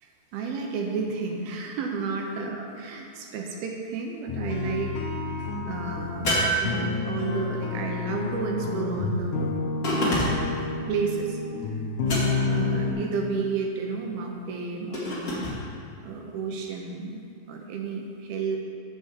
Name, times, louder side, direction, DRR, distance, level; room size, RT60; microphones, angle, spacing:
voice 1, 0.0-5.0 5.7-9.5 9.9-10.1 10.4-10.5 10.9-11.8 12.5-15.5 16.0-18.6, right 4 dB, 80° right, 1 dB, 2.3 m, -32 dB
sound 1, 4.3-12.9, left 3 dB, 85° left, 1.8 m, -29 dB
sound 2, 6.2-7.3 9.8-10.6 12.0-12.7 14.9-15.6, equal, 45° left, 1.2 m, -27 dB
8.0 x 5.6 x 7.3 m, 2.4 s
omnidirectional pair, 5.0 m